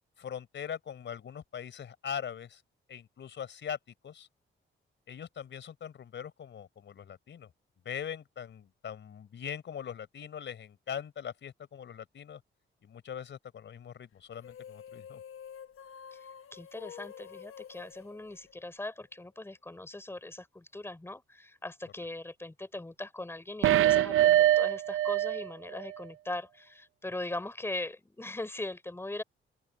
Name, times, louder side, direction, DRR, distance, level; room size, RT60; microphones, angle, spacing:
voice 1, 0.2-2.6 2.9-3.8 4.0-4.3 5.1-7.5 7.8-12.4 12.8-15.2, left 8 dB, 65° left, 4.5 m, -41 dB
sound 1, 14.3-19.1, left 8 dB, 90° left, 1.1 m, -48 dB
voice 2, 16.5-29.2, left 2 dB, 10° left, 3.6 m, -40 dB
sound 2, 23.6-25.5 25.8-25.9, right 13 dB, 85° right, 0.6 m, -24 dB
open air
wide cardioid pair, 125°, 21 cm